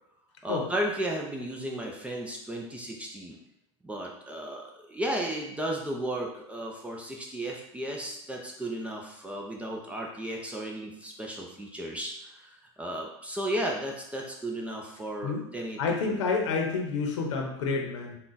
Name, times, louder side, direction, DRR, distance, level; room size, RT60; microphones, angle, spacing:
voice 1, 0.4-3.4 3.8-12.5 12.8-15.8 16.1-16.2, right 1 dB, 10° right, -1 dB, 0.5 m, -34 dB
voice 2, 15.8-18.2, left 4 dB, 85° left, 1 dB, 0.8 m, -29 dB
3.7 x 2.3 x 3.9 m, 0.81 s
supercardioid pair, 125°, 15 cm